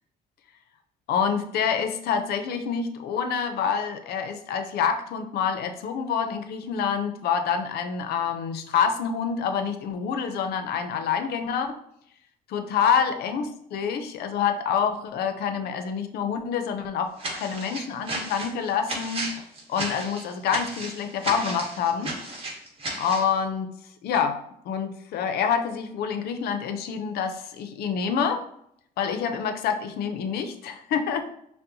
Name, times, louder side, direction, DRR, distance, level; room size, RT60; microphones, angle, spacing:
voice 1, 1.1-11.8 12.5-19.3 19.7-22.1 22.9-23.7 24.0-24.4 24.7-28.4 29.0-31.3, left 7 dB, 70° left, 8 dB, 0.5 m, -27 dB
sound 1, 17.2-23.3, right 1 dB, 35° right, 1.1 m, -34 dB
5.4 x 2.0 x 2.6 m, 0.72 s
cardioid pair, 110°, 17 cm